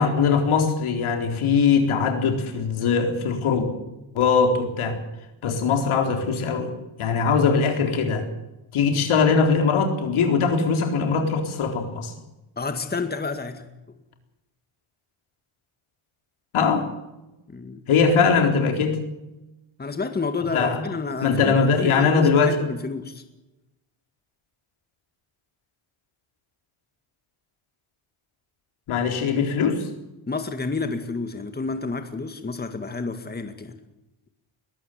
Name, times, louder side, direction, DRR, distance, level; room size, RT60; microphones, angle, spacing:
voice 1, 0.0-3.7 4.1-5.0 5.4-6.7 7.0-8.3 8.7-12.1 16.5-16.9 17.9-19.0 20.5-20.8 21.2-22.6 28.9-29.9, left 5 dB, 75° left, 4 dB, 4.2 m, -21 dB
voice 2, 12.6-13.7 17.5-17.8 19.8-23.2 30.3-33.8, left 4 dB, 20° left, 7 dB, 2.0 m, -30 dB
21.5 x 14.5 x 8.7 m, 0.98 s
cardioid pair, 105°, 49 cm